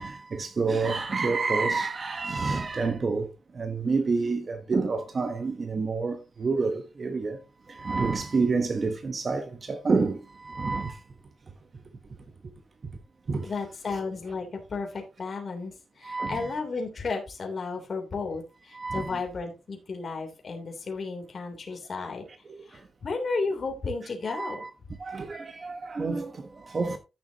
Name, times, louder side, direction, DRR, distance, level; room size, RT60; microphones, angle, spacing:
voice 1, 0.0-7.4 7.7-11.0 12.8-12.9 13.3-13.5 16.0-16.5 18.7-19.2 24.3-24.7 25.0-27.0, right 4 dB, 35° right, 1.1 m, -28 dB
voice 2, 13.4-22.2 22.7-24.6, left 4 dB, 40° left, 3.3 m, -33 dB
14.5 x 7.0 x 2.9 m
wide cardioid pair, 160°, 0 cm